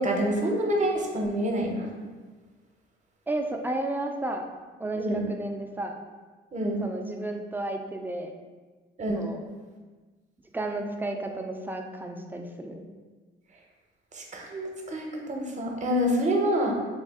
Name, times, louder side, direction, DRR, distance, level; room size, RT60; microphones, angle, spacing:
voice 1, 0.0-1.9 5.0-5.2 6.5-6.8 9.0-9.2 14.1-16.7, equal, 35° right, 1 dB, 0.7 m, -27 dB
voice 2, 3.3-4.4 4.8-5.9 6.8-8.3 9.1-9.4 10.5-12.8, right 2 dB, 10° right, 3 dB, 0.4 m, -32 dB
3.5 x 2.3 x 3.5 m, 1.3 s
cardioid pair, 90°, 20 cm